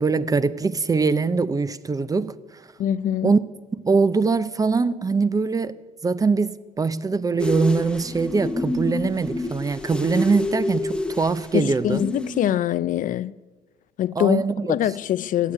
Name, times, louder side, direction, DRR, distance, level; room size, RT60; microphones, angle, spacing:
voice 1, 0.0-2.3 3.2-3.4 3.8-5.8 6.0-12.0 14.2-14.8, right 4 dB, 20° right, 0.6 m, -22 dB
voice 2, 2.8-3.3 11.5-13.3 14.0-14.4 14.7-15.5, left 11 dB, 50° left, 0.4 m, -23 dB
sound 1, 7.4-12.6, left 2 dB, 5° left, 0.9 m, -29 dB
15.0 x 7.9 x 9.8 m
cardioid pair, 110°, 17 cm